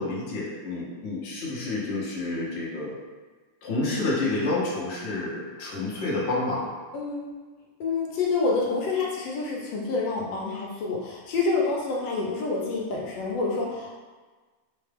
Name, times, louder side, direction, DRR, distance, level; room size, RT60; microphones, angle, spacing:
voice 1, 0.0-3.0 3.6-6.7, left 2 dB, 55° left, -5 dB, 0.7 m, -29 dB
voice 2, 6.9-7.3 7.8-13.9, left 3 dB, 75° left, -2 dB, 1.3 m, -27 dB
4.3 x 2.2 x 3.3 m, 1.3 s
omnidirectional pair, 2.2 m